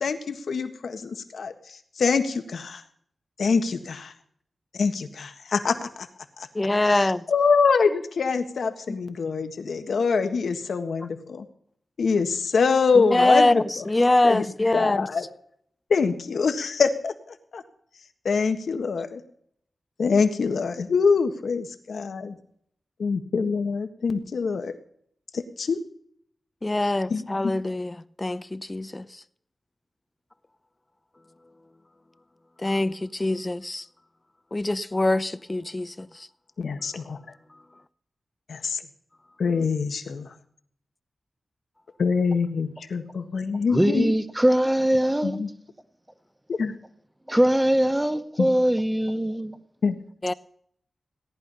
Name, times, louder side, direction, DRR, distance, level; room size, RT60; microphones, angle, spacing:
voice 1, 0.0-1.5 2.0-2.8 3.4-4.1 4.8-6.1 6.4-6.5 6.8-11.4 12.0-13.9 14.2-14.4 14.7-15.3 15.9-17.1 17.5-17.6 18.2-19.2 20.0-22.4 23.0-24.7 25.3-25.8 26.8-27.5 36.6-37.2 38.5-38.8 39.4-40.3 42.0-44.2 45.2-45.5 46.6-46.7 48.4-48.5 49.8-50.0, left 5 dB, 80° left, 1.5 m, -25 dB
voice 2, 6.5-7.2 13.0-15.1 26.6-29.0 32.6-33.8 34.5-36.1 50.2-50.3, left 2 dB, 25° left, 0.6 m, -23 dB
voice 3, 43.7-45.4 47.3-49.6, right 1 dB, 10° right, 1.2 m, -22 dB
18.0 x 11.0 x 5.5 m
wide cardioid pair, 75°, 0 cm